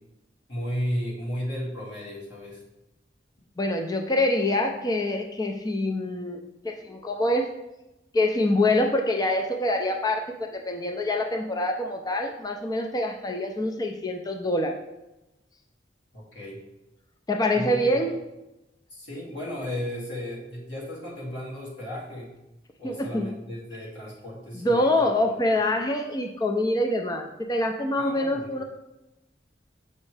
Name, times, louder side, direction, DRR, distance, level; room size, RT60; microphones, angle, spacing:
voice 1, 0.5-2.6 16.1-16.6 17.5-18.0 18.9-22.3 22.8-25.1 25.7-25.8 28.0-28.6, equal, 90° left, -5 dB, 2.4 m, -34 dB
voice 2, 3.6-6.4 6.6-7.5 8.1-14.7 17.3-18.1 22.8-23.3 24.5-28.6, left 1 dB, 20° left, 3 dB, 0.4 m, -25 dB
7.0 x 5.4 x 3.3 m, 0.96 s
head